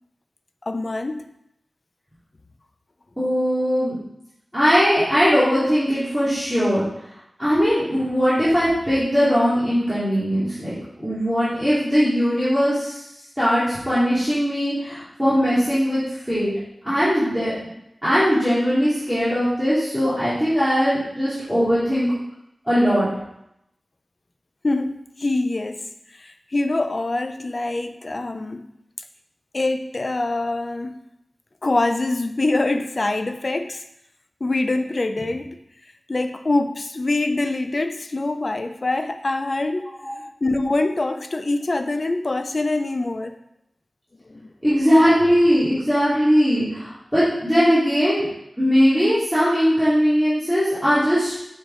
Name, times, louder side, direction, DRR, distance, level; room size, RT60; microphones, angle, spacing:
voice 1, 0.7-1.2 24.6-28.6 29.5-31.0 31.6-33.8 34.4-35.6 36.1-39.9 40.4-43.4 44.2-44.5, left 2 dB, 45° left, 7 dB, 0.5 m, -24 dB
voice 2, 3.2-4.0 4.5-6.8 7.4-13.0 13.4-16.0 16.3-16.5 16.8-17.5 18.0-22.1 22.6-23.1 40.0-40.1 44.6-48.3 48.6-51.3, equal, ahead, -13 dB, 2.6 m, -20 dB
6.5 x 4.8 x 3.9 m, 0.79 s
wide cardioid pair, 90°, 0 cm